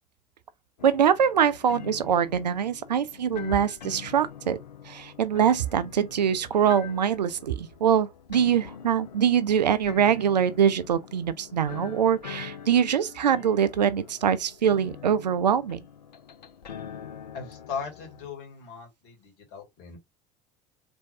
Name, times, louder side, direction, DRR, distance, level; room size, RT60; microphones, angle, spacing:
sound 1, 0.8-18.3, left 8 dB, 80° left, 0.6 m, -44 dB
voice 1, 0.8-4.6 4.9-15.8, right 8 dB, 80° right, 0.4 m, -23 dB
voice 2, 17.3-20.0, left 5 dB, 55° left, 2.1 m, -38 dB
4.3 x 3.4 x 2.7 m
figure-of-eight pair, 65°, 21 cm